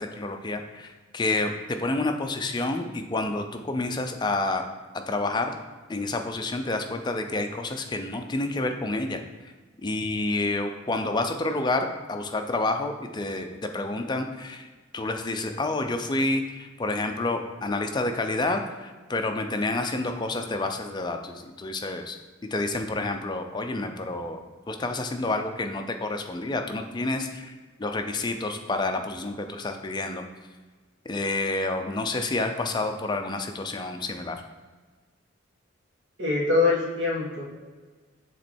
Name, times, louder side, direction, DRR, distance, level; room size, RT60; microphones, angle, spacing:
voice 1, 0.0-4.6 4.9-5.6 5.9-9.2 9.8-14.7 14.9-22.2 22.5-24.4 24.7-27.5 27.8-30.2 31.1-34.4, left 2 dB, 20° left, 5 dB, 0.4 m, -29 dB
voice 2, 36.2-37.4, left 3 dB, 65° right, -3 dB, 1.5 m, -23 dB
7.3 x 3.1 x 4.3 m, 1.4 s
head